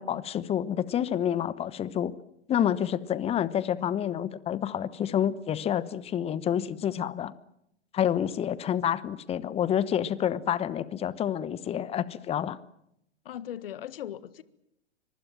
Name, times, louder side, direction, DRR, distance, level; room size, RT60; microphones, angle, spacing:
voice 1, 0.0-2.1 2.5-7.3 7.9-12.6, left 10 dB, 15° left, 18 dB, 1.1 m, -28 dB
voice 2, 13.2-14.4, left 11 dB, 55° left, 16 dB, 1.6 m, -38 dB
25.0 x 23.5 x 7.5 m, 0.78 s
figure-of-eight pair, 110°, 34 cm